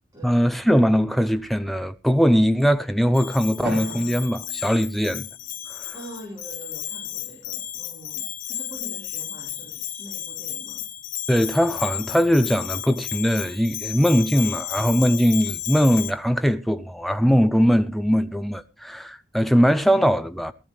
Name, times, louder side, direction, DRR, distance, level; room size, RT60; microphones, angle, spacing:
voice 1, 0.2-5.3 5.7-5.9 11.3-20.5, equal, ahead, 0.6 m, -20 dB
Bell, 3.1-16.1, left 13 dB, 45° left, 0.9 m, -33 dB
Drum, 3.6-5.9, equal, 75° right, 4.9 m, -37 dB
voice 2, 5.9-10.9, right 1 dB, 20° right, 4.3 m, -43 dB
18.5 x 12.5 x 3.2 m
head